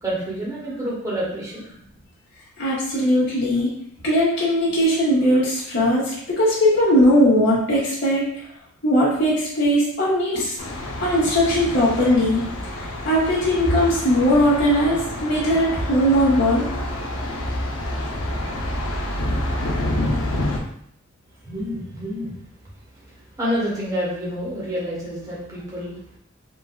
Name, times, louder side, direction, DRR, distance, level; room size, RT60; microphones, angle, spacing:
voice 1, 0.0-1.7 21.4-22.4 23.1-25.9, equal, 15° right, -6 dB, 1.0 m, -28 dB
voice 2, 2.6-3.7 4.0-8.2 8.8-10.6 11.0-12.4 12.7-16.6, equal, 60° left, -7 dB, 1.1 m, -19 dB
Thunder, 10.6-20.6, left 1 dB, 85° left, 0.5 m, -28 dB
3.7 x 2.5 x 2.2 m, 0.69 s
head